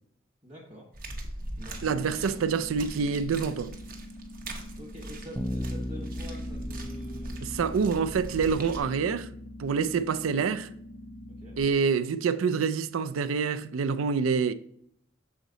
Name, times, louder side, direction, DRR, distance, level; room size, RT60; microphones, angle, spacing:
voice 1, 0.4-0.9 1.6-1.9 2.2-2.4 4.8-7.3 11.4-11.6, equal, 25° right, 1.2 m, -46 dB
sound 1, 0.9-8.8, right 1 dB, 45° right, 0.9 m, -41 dB
sound 2, 1.7-11.7, left 1 dB, 80° left, 0.9 m, -46 dB
voice 2, 1.8-3.8 7.4-9.3 9.6-10.7 11.6-14.5, right 5 dB, 85° right, 0.4 m, -27 dB
Bass guitar, 5.3-11.6, equal, 5° left, 0.4 m, -38 dB
6.4 x 4.0 x 3.9 m
head